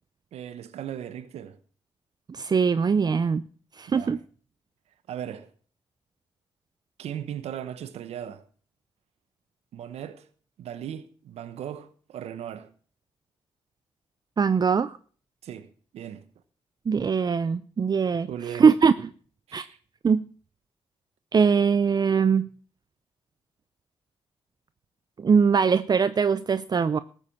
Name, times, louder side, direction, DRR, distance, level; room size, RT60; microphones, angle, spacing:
voice 1, 0.3-1.6 3.9-4.2 5.1-5.5 7.0-8.4 9.7-10.3 10.6-12.7 15.4-15.7 15.9-16.3 18.3-18.7 19.5-19.8, right 9 dB, 85° right, 1.0 m, -37 dB
voice 2, 2.3-3.4 3.8-4.2 14.4-15.0 16.9-18.9 19.5-19.7 20.0-20.2 21.3-22.5 25.2-27.0, right 6 dB, 40° right, 0.6 m, -22 dB
14.0 x 8.2 x 7.2 m
cardioid pair, 75°, 10 cm